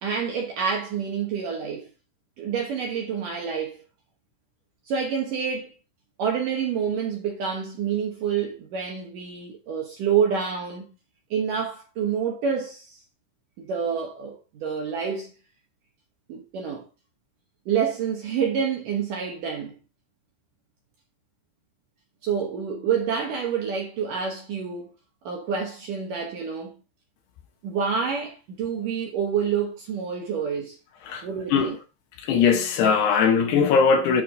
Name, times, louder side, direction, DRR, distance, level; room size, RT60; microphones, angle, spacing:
voice 1, 0.0-1.9 2.4-3.8 4.9-5.7 6.2-10.8 11.3-13.0 13.6-15.3 16.3-16.8 17.7-19.8 22.2-24.9 25.2-26.7 27.6-30.8 31.2-31.8, right 7 dB, 65° right, 2.2 m, -28 dB
voice 2, 31.0-31.7 32.2-34.2, left 6 dB, 70° left, 3.1 m, -20 dB
9.8 x 6.8 x 3.8 m
omnidirectional pair, 5.4 m